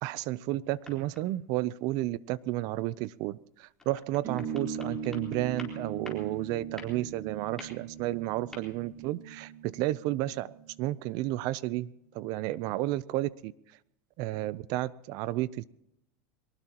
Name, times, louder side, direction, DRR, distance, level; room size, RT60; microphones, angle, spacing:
voice 1, 0.0-10.5 10.8-11.9 12.1-13.5 14.2-15.6, right 16 dB, 50° right, 20 dB, 0.6 m, -32 dB
sound 1, 0.6-1.4 3.7-6.4 6.7-9.0, left 3 dB, 5° left, 4.0 m, -50 dB
sound 2, 4.2-11.2, right 6 dB, 30° right, 4.4 m, -40 dB
22.5 x 19.0 x 3.0 m, 0.80 s
supercardioid pair, 140°, 9 cm